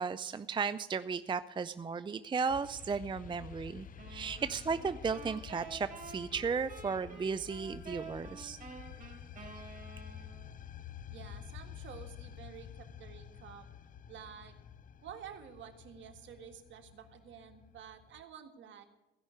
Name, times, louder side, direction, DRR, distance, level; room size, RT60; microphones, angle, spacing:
voice 1, 0.0-8.6, right 5 dB, 25° right, 13 dB, 0.4 m, -35 dB
sound 1, 2.5-18.2, left 8 dB, 45° left, 0.5 m, -50 dB
sound 2, 4.0-10.6, right 4 dB, 40° right, 4.1 m, -50 dB
voice 2, 11.1-13.7 14.1-14.5 15.0-18.9, right 8 dB, 70° right, 5 dB, 1.7 m, -50 dB
16.0 x 5.5 x 9.7 m, 1.1 s
cardioid pair, 90°, 20 cm